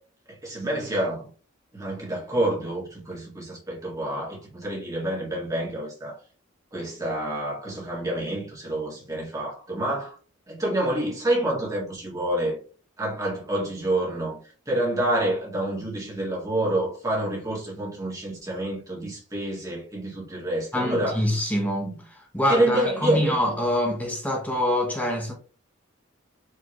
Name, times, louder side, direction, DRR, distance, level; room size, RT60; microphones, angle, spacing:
voice 1, 0.3-1.3 1.7-6.2 6.7-10.2 10.5-12.6 13.0-14.4 14.7-21.2 21.8-21.9 22.5-23.4, right 1 dB, 15° right, 1.8 m, -28 dB
voice 2, 20.7-25.3, left 1 dB, 10° left, 0.7 m, -25 dB
4.9 x 3.3 x 2.9 m
head